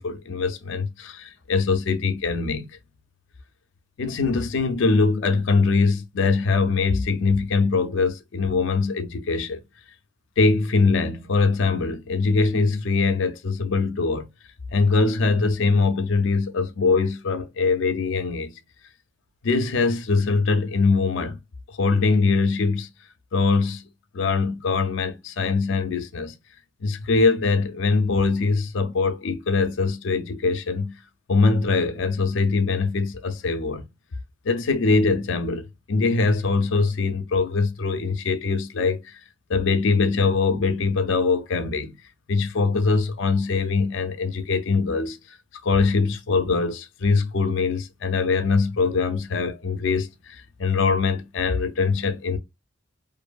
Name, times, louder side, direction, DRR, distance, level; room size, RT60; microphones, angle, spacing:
voice 1, 0.0-2.7 4.0-9.6 10.4-14.3 14.7-18.5 19.4-21.4 21.7-22.9 23.3-23.9 24.1-26.3 26.8-31.0 31.3-33.9 34.4-39.2 39.5-42.0 42.3-45.4 45.6-52.4, left 4 dB, 70° left, 0.4 m, -22 dB
2.5 x 2.4 x 2.2 m
head